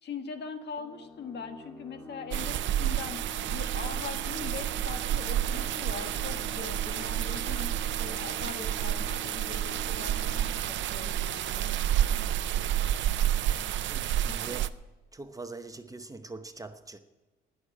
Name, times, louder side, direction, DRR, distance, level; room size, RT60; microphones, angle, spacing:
voice 1, 0.0-3.2 3.5-7.7 8.0-11.8, left 5 dB, 60° left, 1.6 m, -41 dB
sound 1, 0.8-12.1, left 3 dB, 15° left, 2.1 m, -48 dB
sound 2, 2.3-14.7, right 11 dB, 70° right, 0.5 m, -30 dB
voice 2, 13.9-14.8 15.1-17.0, right 3 dB, 15° right, 0.9 m, -43 dB
19.0 x 6.6 x 8.7 m
cardioid pair, 90°, 20 cm